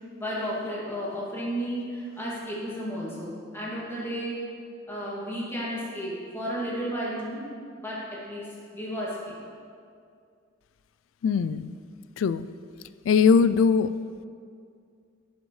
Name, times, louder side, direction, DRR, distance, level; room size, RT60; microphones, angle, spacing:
voice 1, 0.2-4.4 4.9-7.4 7.8-9.4, equal, 15° left, -7 dB, 2.3 m, -33 dB
voice 2, 11.2-11.7 12.2-12.5 13.1-13.9, left 6 dB, 80° left, 14 dB, 0.3 m, -21 dB
12.0 x 8.1 x 3.2 m, 2.3 s
head